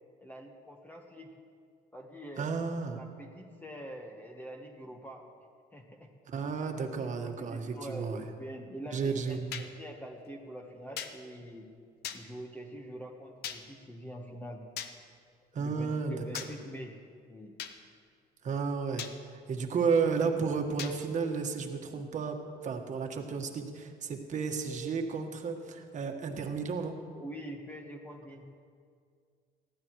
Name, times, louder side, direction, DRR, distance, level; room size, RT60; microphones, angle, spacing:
voice 1, 0.2-1.3 1.9-2.6 2.9-5.3 5.7-6.1 7.0-11.7 12.1-14.6 15.5-16.9 17.3-17.6 27.1-28.5, equal, 10° left, 1 dB, 1.2 m, -45 dB
voice 2, 2.4-3.0 6.3-8.3 8.9-9.6 15.5-16.1 18.4-19.1 19.5-22.4 22.6-27.0, right 5 dB, 45° right, 4 dB, 1.5 m, -32 dB
sound 1, 9.5-9.7 11.0-11.1 12.0-12.2 13.4-13.6 14.8-14.9 16.3-16.5 17.6-17.7 19.0-19.1 20.8-20.9, left 9 dB, 70° left, 0.9 m, -38 dB
19.5 x 14.5 x 3.2 m, 2.1 s
cardioid pair, 110°, 17 cm